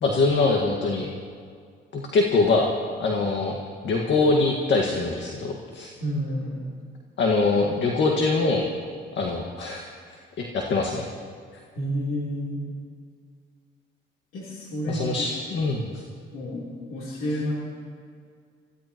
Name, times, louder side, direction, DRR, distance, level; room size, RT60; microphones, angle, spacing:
voice 1, 0.0-1.1 1.9-2.7 3.0-3.6 3.8-5.9 7.2-8.7 9.2-9.9 10.4-11.1 14.9-15.9, left 3 dB, 65° left, 0 dB, 1.8 m, -23 dB
voice 2, 6.0-6.6 11.8-12.6 14.3-15.3 15.6-15.7 16.3-17.5, equal, 90° left, -6 dB, 3.5 m, -30 dB
25.0 x 16.5 x 3.0 m, 2.1 s
cardioid pair, 90°, 20 cm